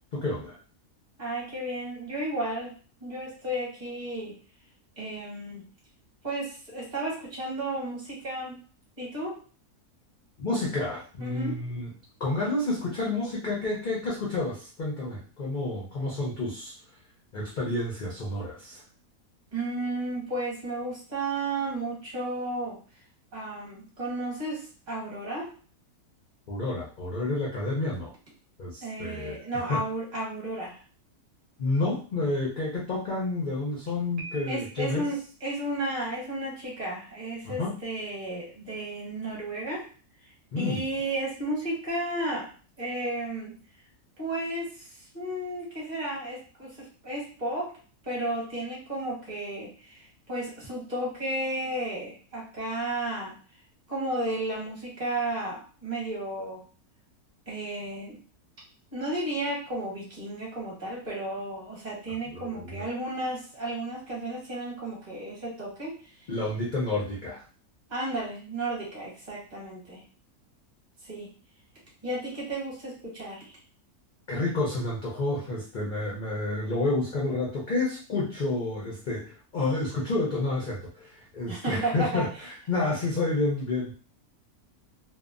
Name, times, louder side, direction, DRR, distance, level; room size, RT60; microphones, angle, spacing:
voice 1, 0.1-0.5 10.4-11.9 12.2-16.7 17.3-18.8 26.5-28.1 28.6-29.4 29.7-29.8 31.6-35.0 37.4-37.8 40.5-40.8 62.3-62.9 66.3-67.4 74.3-83.9, left 2 dB, 65° left, -5 dB, 0.4 m, -30 dB
voice 2, 1.2-2.7 3.0-4.3 5.0-5.6 6.2-8.6 9.0-9.4 11.2-11.6 19.5-22.8 23.3-25.5 28.8-30.8 34.5-39.8 40.6-42.5 42.8-43.6 44.2-47.7 48.0-53.3 53.9-56.6 57.5-58.2 58.9-66.0 67.9-70.0 71.0-71.3 72.0-73.5 81.4-82.2, right 1 dB, 30° right, -4 dB, 1.1 m, -33 dB
Piano, 34.2-35.1, right 2 dB, 80° right, 1.1 m, -44 dB
2.7 x 2.1 x 2.4 m, 0.38 s
omnidirectional pair, 1.6 m